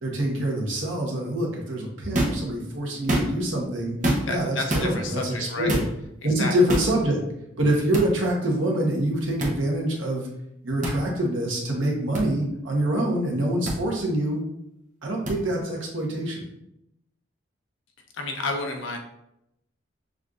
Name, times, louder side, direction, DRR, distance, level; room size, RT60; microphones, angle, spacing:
voice 1, 0.0-4.0 4.3-5.8 6.2-7.2 7.6-10.3 10.6-14.4 15.0-16.4, right 1 dB, 80° right, -1 dB, 1.1 m, -25 dB
sound 1, 2.1-2.4 3.0-3.5 4.0-4.4 4.7-4.9 5.7-5.9 6.7-6.9 7.9-8.1 9.4-9.6 10.8-11.0 12.1-12.2 13.7-13.8 15.3-15.4, right 1 dB, 40° right, 0.7 m, -25 dB
voice 2, 4.2-5.7 6.2-6.5 18.1-19.0, left 2 dB, 80° left, 3 dB, 0.7 m, -30 dB
6.3 x 2.5 x 2.4 m, 0.81 s
head